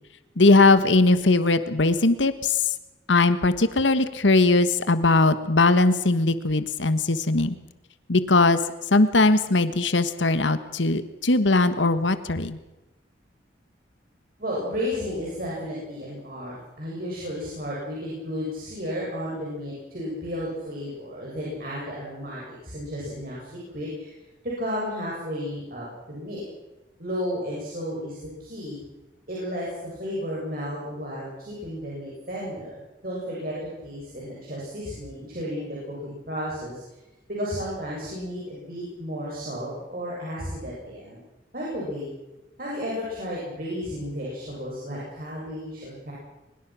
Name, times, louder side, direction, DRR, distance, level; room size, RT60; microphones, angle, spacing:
voice 1, 0.4-2.7 3.1-7.6 8.1-8.6 8.9-12.6, left 2 dB, 90° left, 12 dB, 1.4 m, -20 dB
voice 2, 14.4-24.2 24.4-26.4 27.0-28.8 29.3-36.8 37.3-41.2 41.5-42.1 42.6-46.1, equal, 50° right, -5 dB, 7.7 m, -33 dB
23.0 x 21.0 x 6.2 m, 0.99 s
head